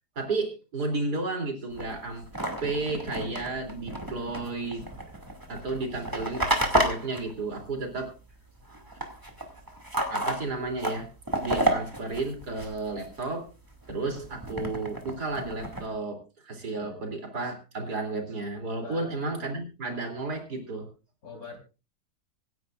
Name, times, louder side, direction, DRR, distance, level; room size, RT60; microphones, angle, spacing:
voice 1, 0.2-2.3 2.6-4.9 5.5-6.4 6.8-8.1 10.1-11.1 11.4-13.5 13.9-20.9, right 3 dB, 75° right, 3 dB, 3.8 m, -32 dB
sound 1, 1.7-8.3 8.6-13.2 13.6-15.9, right 1 dB, 10° right, 2.4 m, -31 dB
voice 2, 16.7-17.1 18.8-19.5 21.2-21.6, left 4 dB, 60° left, 3 dB, 4.4 m, -44 dB
25.5 x 10.5 x 2.5 m, 0.31 s
omnidirectional pair, 1.7 m